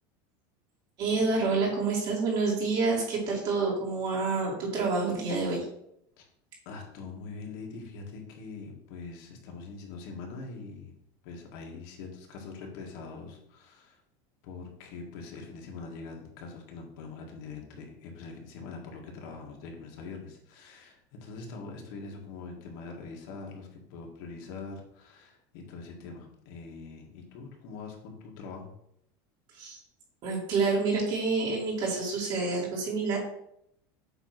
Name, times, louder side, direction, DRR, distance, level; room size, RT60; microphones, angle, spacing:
voice 1, 1.0-5.7 29.5-29.8 30.2-33.2, right 3 dB, 40° right, -3 dB, 2.3 m, -28 dB
voice 2, 6.7-10.9 11.2-14.0 14.4-28.7, left 4 dB, 65° left, 1 dB, 2.0 m, -43 dB
7.9 x 3.1 x 6.0 m, 0.74 s
supercardioid pair, 160°, 12 cm